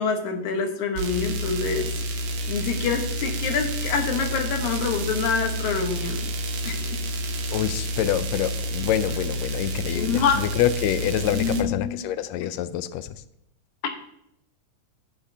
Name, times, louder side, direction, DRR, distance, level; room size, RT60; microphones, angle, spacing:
voice 1, 0.0-1.9 2.5-6.3 6.6-7.0 9.9-10.4 11.3-12.0, left 5 dB, 70° left, 4 dB, 2.5 m, -26 dB
sound 1, 1.0-11.6, equal, 65° right, 2.1 m, -29 dB
voice 2, 7.5-13.2, left 11 dB, 90° left, 13 dB, 1.5 m, -26 dB
15.5 x 6.5 x 2.7 m, 0.77 s
omnidirectional pair, 3.6 m